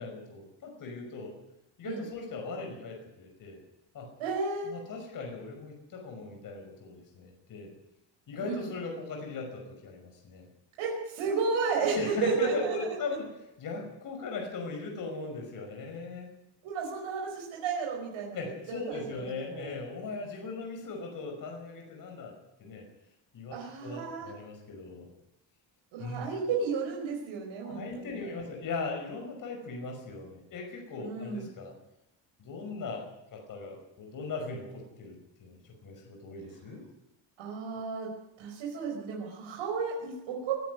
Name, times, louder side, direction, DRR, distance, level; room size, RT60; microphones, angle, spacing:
voice 1, 0.0-1.3 1.8-3.6 3.9-4.1 4.7-7.7 8.3-10.5 11.9-13.3 13.6-16.3 18.3-22.3 22.6-22.9 23.3-23.5 23.8-25.1 26.0-26.3 27.6-31.7 32.4-35.6 35.8-36.8, left 3 dB, 45° left, 2 dB, 5.6 m, -39 dB
voice 2, 4.2-4.7 8.4-8.7 10.8-13.0 16.6-19.7 23.5-24.3 25.9-28.4 31.0-31.5 37.4-38.1 38.4-40.6, right 5 dB, 85° right, -1 dB, 5.4 m, -33 dB
21.0 x 13.5 x 9.5 m, 0.90 s
cardioid pair, 180°, 46 cm